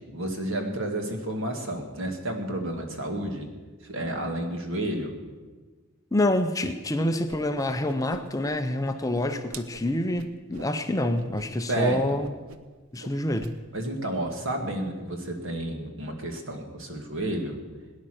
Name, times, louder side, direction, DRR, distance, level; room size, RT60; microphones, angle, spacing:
voice 1, 0.0-3.5 3.8-5.1 11.7-12.2 13.7-17.6, right 1 dB, 60° right, 3 dB, 2.1 m, -31 dB
voice 2, 6.1-12.3 12.9-13.6, left 1 dB, 15° left, 7 dB, 0.6 m, -27 dB
Whoosh swoosh swish, 7.3-7.4 7.7-8.6 8.8-10.7 11.1-11.5 11.7-11.9 12.2-12.7 13.0-13.5, right 4 dB, 80° right, 0.9 m, -44 dB
18.0 x 10.0 x 6.5 m, 1.3 s
head